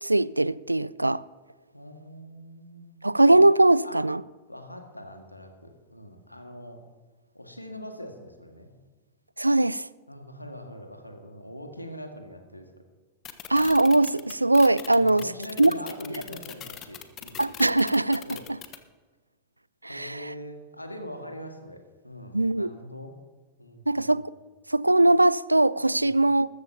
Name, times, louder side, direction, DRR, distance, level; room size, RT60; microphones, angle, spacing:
voice 1, 0.0-1.2 3.0-4.2 9.4-9.9 13.5-15.2 15.6-15.7 17.4-18.3 19.9-20.2 22.3-22.7 23.9-24.2 24.7-26.5, right 2 dB, 85° right, 0.3 m, -20 dB
voice 2, 1.7-3.1 3.8-4.0 4.5-6.8 7.3-8.7 10.1-12.7 14.9-17.4 18.3-18.5 19.9-23.1 23.6-24.3 25.9-26.2, equal, 85° left, 1.8 m, -42 dB
sound 1, 13.2-18.8, left 11 dB, 30° left, 1.2 m, -40 dB
21.0 x 14.0 x 2.8 m
figure-of-eight pair, 90°, 0 cm